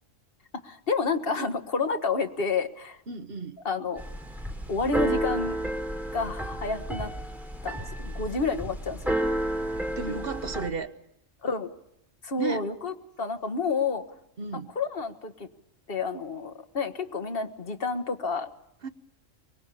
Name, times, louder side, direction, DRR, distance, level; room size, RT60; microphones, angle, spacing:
voice 1, 0.6-3.0 3.6-4.0 4.7-5.6 6.1-7.1 7.6-9.1 11.4-11.7 12.2-14.0 14.8-15.5 15.9-18.5, left 4 dB, 45° left, 7 dB, 1.8 m, -29 dB
voice 2, 3.1-3.6 9.8-10.9 12.4-12.7 14.4-14.7 18.8-18.9, right 5 dB, 50° right, 10 dB, 1.2 m, -34 dB
Keyboard (musical), 4.0-10.7, right 1 dB, ahead, 3.4 m, -31 dB
24.0 x 22.5 x 7.1 m, 0.79 s
omnidirectional pair, 1.3 m